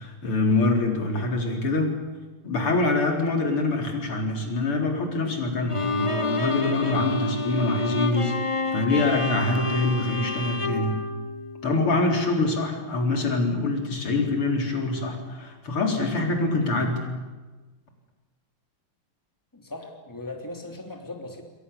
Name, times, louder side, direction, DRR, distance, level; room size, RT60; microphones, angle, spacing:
voice 1, 0.0-2.0 2.4-11.0 11.6-17.1, left 2 dB, 90° left, 2 dB, 4.8 m, -25 dB
Bowed string instrument, 5.7-12.0, left 3 dB, 25° left, 0.7 m, -29 dB
voice 2, 19.5-21.4, left 2 dB, 10° left, 2 dB, 3.2 m, -38 dB
29.0 x 22.0 x 7.1 m, 1.3 s
omnidirectional pair, 2.4 m